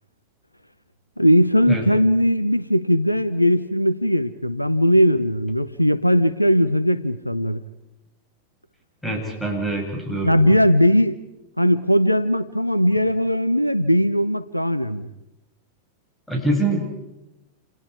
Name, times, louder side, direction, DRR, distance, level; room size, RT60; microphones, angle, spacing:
voice 1, 1.2-7.6 10.2-11.2 11.6-15.1, equal, 90° left, 16 dB, 0.9 m, -19 dB
voice 2, 9.0-10.5 16.3-16.9, right 1 dB, 5° left, 1 dB, 8.0 m, -24 dB
29.0 x 29.0 x 4.9 m, 0.92 s
figure-of-eight pair, 90°, 0 cm